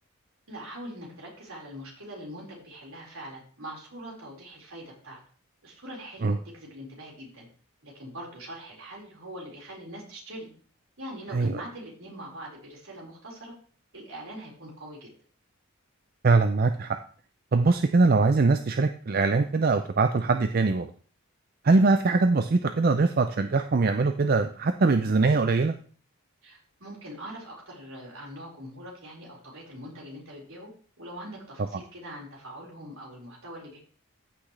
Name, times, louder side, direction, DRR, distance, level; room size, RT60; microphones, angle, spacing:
voice 1, 0.5-5.2 5.6-7.5 7.8-10.5 11.0-13.5 13.9-15.1 26.4-30.7 31.0-33.8, equal, 65° right, -3 dB, 4.7 m, -42 dB
voice 2, 16.2-17.0 17.5-20.9 21.6-25.7, right 3 dB, 40° right, 8 dB, 0.5 m, -22 dB
14.5 x 6.0 x 3.3 m, 0.43 s
head